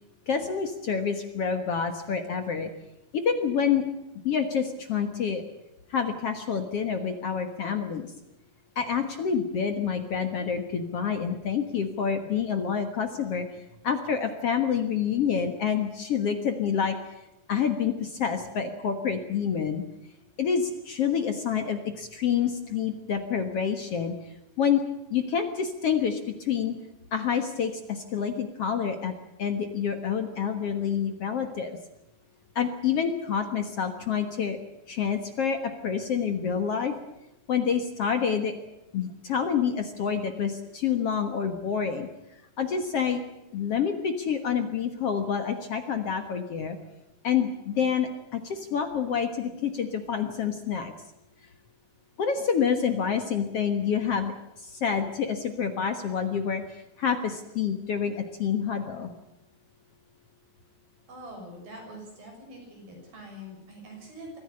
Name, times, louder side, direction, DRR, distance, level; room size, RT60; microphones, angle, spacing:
voice 1, 0.3-2.7 3.1-3.8 4.2-5.4 5.9-8.1 8.8-13.5 13.8-17.0 17.5-19.8 20.4-24.1 24.6-24.8 25.1-26.7 27.1-29.1 29.4-31.8 32.6-34.6 34.9-36.9 37.5-38.5 38.9-42.1 42.6-43.2 43.5-46.8 47.2-50.9 52.2-54.3 54.6-59.1, left 7 dB, 55° left, 7 dB, 2.0 m, -27 dB
voice 2, 61.1-64.4, equal, 80° right, 2 dB, 8.4 m, -44 dB
23.0 x 15.0 x 9.8 m, 0.92 s
omnidirectional pair, 4.1 m